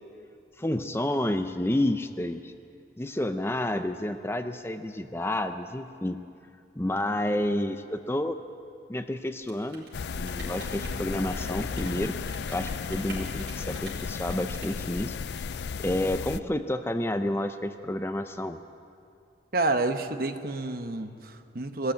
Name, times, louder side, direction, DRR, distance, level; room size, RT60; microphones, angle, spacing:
voice 1, 0.6-2.5 3.0-6.2 6.8-8.4 8.9-9.9 10.1-12.1 12.5-15.2 15.8-18.6, left 1 dB, 15° left, 8 dB, 0.6 m, -30 dB
Rain, 9.3-16.1, right 2 dB, 75° right, 5.3 m, -46 dB
sound 1, 9.9-16.4, left 5 dB, 70° left, 0.4 m, -34 dB
voice 2, 19.5-21.9, right 2 dB, 55° right, 7 dB, 1.1 m, -29 dB
21.5 x 14.0 x 9.0 m, 2.5 s
head